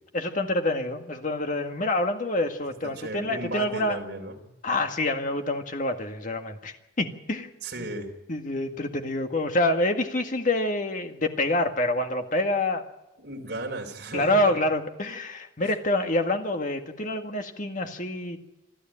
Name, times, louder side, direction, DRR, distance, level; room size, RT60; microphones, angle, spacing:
voice 1, 0.1-4.0 4.6-7.5 7.8-7.9 8.3-12.9 14.1-18.4, left 1 dB, 45° left, 5 dB, 1.9 m, -27 dB
voice 2, 3.0-4.3 7.6-8.1 13.2-14.6 15.6-15.7, right 2 dB, 65° right, 2 dB, 4.0 m, -35 dB
26.0 x 13.5 x 9.0 m, 0.97 s
head